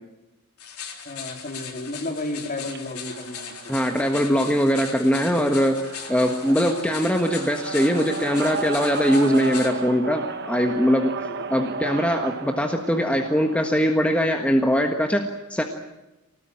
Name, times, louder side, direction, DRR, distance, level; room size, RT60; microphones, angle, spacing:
sound 1, 0.6-9.7, left 7 dB, 85° left, 4.1 m, -39 dB
voice 1, 1.0-3.7 11.2-11.3, left 2 dB, 40° left, 3 dB, 4.0 m, -33 dB
sound 2, 2.6-14.0, right 4 dB, 50° right, 1.4 m, -35 dB
voice 2, 3.7-5.8 6.1-11.1 11.5-15.6, equal, 5° left, 4 dB, 1.5 m, -21 dB
25.5 x 19.0 x 8.9 m, 1.0 s
head